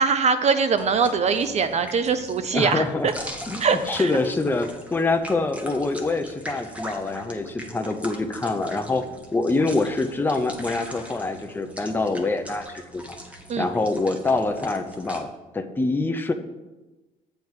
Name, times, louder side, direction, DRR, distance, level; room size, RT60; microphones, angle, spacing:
voice 1, 0.0-2.8 3.6-4.1 13.5-13.7, right 5 dB, 40° right, 10 dB, 0.6 m, -22 dB
sound 1, 0.8-15.2, equal, 10° right, 1.2 m, -41 dB
voice 2, 2.5-3.1 3.5-9.0 9.3-13.2 13.6-16.3, left 3 dB, 10° left, 6 dB, 0.6 m, -25 dB
7.7 x 4.6 x 7.2 m, 1.1 s
cardioid pair, 110°, 17 cm